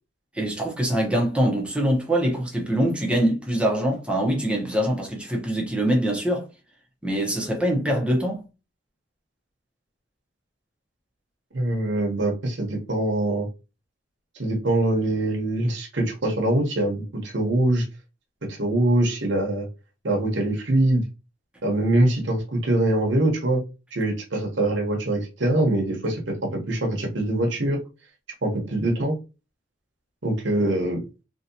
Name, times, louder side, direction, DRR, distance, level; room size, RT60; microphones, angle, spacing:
voice 1, 0.3-6.5 7.0-8.4, equal, 5° right, 0.8 m, -23 dB
voice 2, 11.5-13.5 14.4-17.8 18.5-19.7 20.0-21.0 21.6-23.6 23.9-27.8 28.4-29.2 30.2-31.0, right 1 dB, 65° right, 1.0 m, -23 dB
2.9 x 2.8 x 2.7 m
head